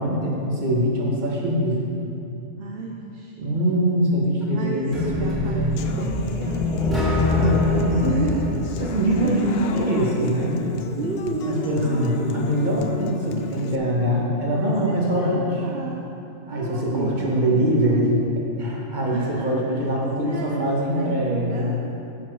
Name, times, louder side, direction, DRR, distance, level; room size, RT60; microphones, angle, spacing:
voice 1, 0.0-1.8 3.4-6.0 7.3-8.3 8.8-10.7 11.5-15.5 16.5-18.1 18.6-21.8, equal, 35° right, -3 dB, 1.6 m, -23 dB
voice 2, 2.6-3.5 3.7-3.8 4.5-8.7 9.2-9.5 11.0-11.7 14.5-16.0 16.5-17.4 19.1-19.9 20.2-21.8, right 4 dB, 55° right, 0 dB, 0.8 m, -32 dB
sound 1, 4.9-9.9, left 3 dB, ahead, 2.0 m, -24 dB
Human voice / Acoustic guitar, 5.8-13.8, left 5 dB, 60° left, 0.7 m, -34 dB
sound 2, 9.7-15.2, right 1 dB, 70° right, 2.6 m, -36 dB
10.0 x 7.3 x 4.8 m, 2.8 s
omnidirectional pair, 1.4 m